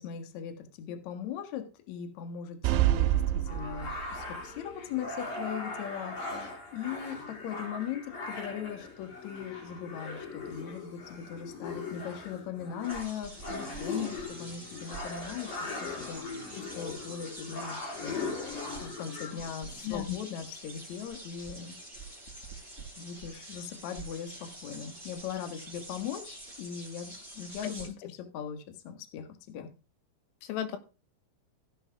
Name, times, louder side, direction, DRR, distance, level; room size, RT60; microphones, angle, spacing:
voice 1, 0.0-15.5 15.8-21.8 23.0-29.7, left 8 dB, 65° left, 5 dB, 1.8 m, -39 dB
sound 1, 2.6-4.3, right 13 dB, 80° right, 2.9 m, -27 dB
sound 2, 3.5-19.8, left 3 dB, 45° left, 5.2 m, -40 dB
sound 3, 12.8-27.9, right 2 dB, 10° left, 5.1 m, -46 dB
voice 2, 19.8-20.2 27.6-28.1 30.4-30.8, left 11 dB, 90° left, 9 dB, 3.8 m, -35 dB
16.0 x 7.8 x 3.6 m, 0.33 s
omnidirectional pair, 5.8 m